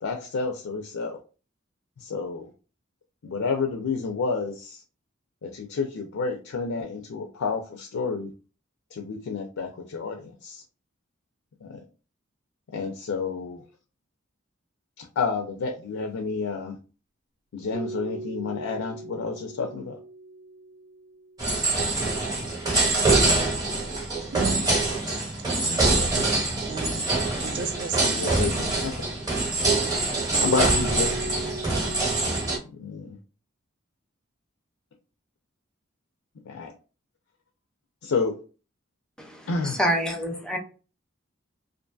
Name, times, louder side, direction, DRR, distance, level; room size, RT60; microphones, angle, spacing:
voice 1, 0.0-1.2 2.0-2.5 3.2-4.8 5.4-8.3 8.9-10.6 11.6-11.7 12.7-13.6 15.0-16.8 17.5-20.0 28.0-29.1 30.4-31.5 32.8-33.2 36.5-36.7 38.0-38.4 39.5-39.8, left 4 dB, 80° left, 3 dB, 0.4 m, -30 dB
sound 1, 17.7-21.8 30.4-32.6, right 2 dB, 85° right, 0.8 m, -37 dB
sound 2, 21.4-32.6, right 2 dB, 20° right, 0.8 m, -24 dB
voice 2, 24.3-24.7 25.5-27.0 27.4-28.2 30.3-30.4, right 5 dB, 55° right, 3 dB, 0.4 m, -34 dB
voice 3, 39.2-40.6, equal, 5° left, 3 dB, 0.4 m, -27 dB
2.5 x 2.5 x 2.2 m, 0.35 s
head